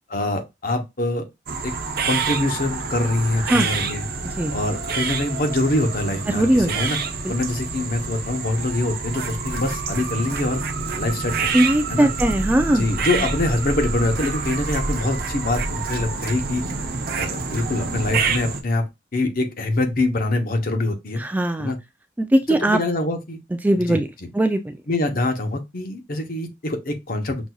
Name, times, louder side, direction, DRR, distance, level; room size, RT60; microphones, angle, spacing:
voice 1, 0.1-1.3 1.6-1.7 2.0-4.0 4.5-7.0 7.3-10.6 11.0-11.5 11.9-12.1 12.7-16.6 17.2-21.2 21.6-21.8 22.5-23.4 23.9-24.3 24.9-27.5, left 2 dB, 55° left, 0.9 m, -24 dB
sound 1, 1.5-18.6, right 4 dB, 55° right, 0.6 m, -27 dB
voice 2, 6.3-6.8 7.2-7.3 11.5-12.9 21.2-21.7 22.2-22.8 23.6-24.1 24.3-24.7, right 1 dB, 10° right, 0.3 m, -19 dB
6.0 x 2.6 x 2.3 m
head